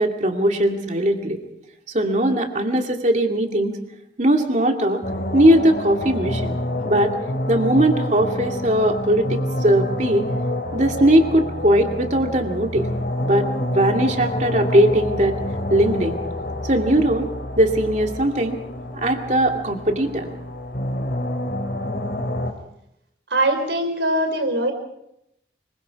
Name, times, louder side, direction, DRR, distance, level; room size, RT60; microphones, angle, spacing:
voice 1, 0.0-1.4 1.9-3.8 4.2-5.0 5.3-6.6 6.8-7.2 7.5-10.3 10.7-12.9 13.2-15.3 15.7-16.2 16.6-17.3 17.6-18.6 18.9-20.3, right 1 dB, 40° right, 3 dB, 2.4 m, -19 dB
sound 1, 5.0-22.5, left 1 dB, 60° left, 2.8 m, -28 dB
voice 2, 23.3-24.7, right 1 dB, 80° right, 6 dB, 4.1 m, -21 dB
25.0 x 23.0 x 4.8 m, 0.79 s
head